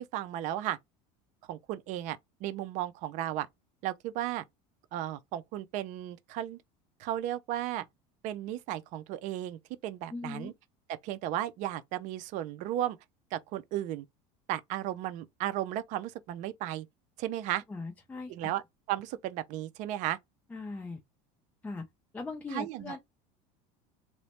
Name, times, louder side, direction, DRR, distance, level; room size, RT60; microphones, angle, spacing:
voice 1, 0.1-0.8 1.5-3.5 3.8-4.4 4.9-6.6 7.0-7.8 8.2-10.5 11.0-13.0 13.3-14.1 14.5-16.9 17.2-17.6 18.3-18.6 18.9-20.2 22.5-23.0, right 13 dB, 55° right, 0.5 m, -34 dB
voice 2, 10.1-10.5 17.7-18.5 20.5-21.0 21.6-21.8 22.1-23.0, left 3 dB, 10° left, 0.4 m, -39 dB
3.0 x 2.1 x 2.9 m
cardioid pair, 135°, 15 cm